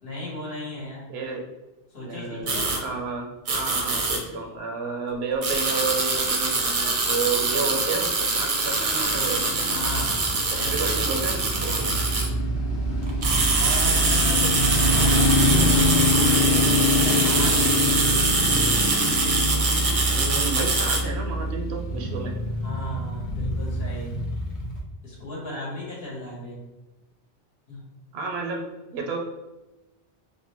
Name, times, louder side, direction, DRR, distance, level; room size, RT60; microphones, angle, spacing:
voice 1, 0.0-1.1 1.9-2.7 9.7-10.2 10.6-12.1 13.5-18.1 22.6-24.1 25.0-26.6 27.7-27.8, left 1 dB, 60° left, -5 dB, 1.3 m, -36 dB
voice 2, 1.1-1.5 2.0-9.7 10.5-11.9 14.2-14.6 20.1-22.4 28.1-29.2, right 4 dB, 70° right, 2 dB, 0.8 m, -31 dB
sound 1, 2.5-2.8 3.5-4.2 5.4-12.3 13.0-21.0, right 3 dB, 50° right, 0.4 m, -24 dB
Motorcycle, 9.0-24.8, left 1 dB, 80° left, 1.0 m, -25 dB
sound 2, 9.8-18.4, right 3 dB, 40° left, 0.4 m, -35 dB
3.7 x 2.1 x 2.9 m, 1.0 s
omnidirectional pair, 1.2 m